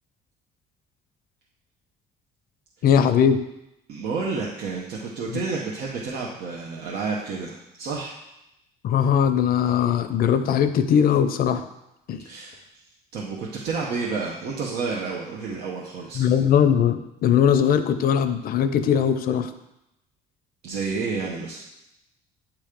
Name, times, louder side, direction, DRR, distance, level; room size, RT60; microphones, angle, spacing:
voice 1, 2.8-3.4 5.3-5.4 8.8-11.6 12.1-12.2 16.1-19.5, left 8 dB, 60° left, 10 dB, 0.6 m, -20 dB
voice 2, 3.9-8.2 12.2-12.6 13.1-16.3 20.6-21.6, right 4 dB, 75° right, -2 dB, 0.9 m, -30 dB
8.7 x 3.1 x 5.1 m, 0.87 s
cardioid pair, 110°, 17 cm